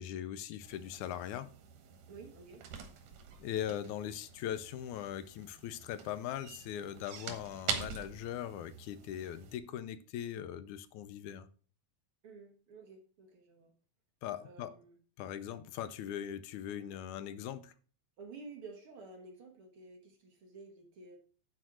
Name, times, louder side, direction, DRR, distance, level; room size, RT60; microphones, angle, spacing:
voice 1, 0.0-1.5 3.4-11.5 14.2-14.8 15.2-17.7, left 10 dB, 85° left, 2.1 m, -40 dB
sound 1, 0.6-9.6, right 6 dB, 90° right, 2.8 m, -45 dB
voice 2, 2.1-2.6 12.2-13.7 14.4-15.0 18.2-21.2, right 4 dB, 50° right, 2.0 m, -52 dB
9.7 x 4.7 x 6.1 m
omnidirectional pair, 3.4 m